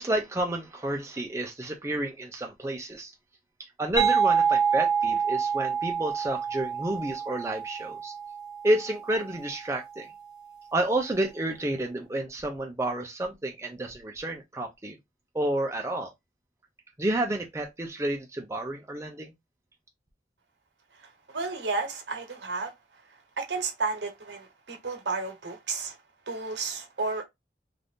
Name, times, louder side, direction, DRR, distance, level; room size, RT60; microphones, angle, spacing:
voice 1, 0.0-3.1 3.6-8.1 8.6-10.1 10.7-15.0 15.3-16.1 17.0-19.3, right 1 dB, 15° right, 0.4 m, -30 dB
sound 1, 4.0-9.4, right 6 dB, 40° left, 1.3 m, -27 dB
voice 2, 21.0-22.7 23.4-26.0 26.3-27.2, right 3 dB, 85° right, 1.0 m, -32 dB
2.6 x 2.4 x 3.5 m
head